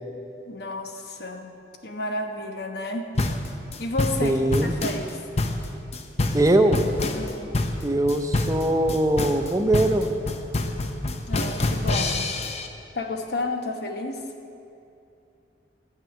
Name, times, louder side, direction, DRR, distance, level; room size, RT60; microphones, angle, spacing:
voice 1, 0.5-1.5 1.8-3.1 3.8-5.2 7.1-7.5 11.3-12.3 12.9-14.2, left 2 dB, 65° left, 4 dB, 1.0 m, -31 dB
sound 1, 3.2-12.7, left 2 dB, 40° left, 0.7 m, -26 dB
voice 2, 4.2-4.8 6.3-6.8 7.8-10.1, right 1 dB, 20° right, 6 dB, 0.6 m, -21 dB
12.5 x 5.4 x 9.0 m, 2.7 s
head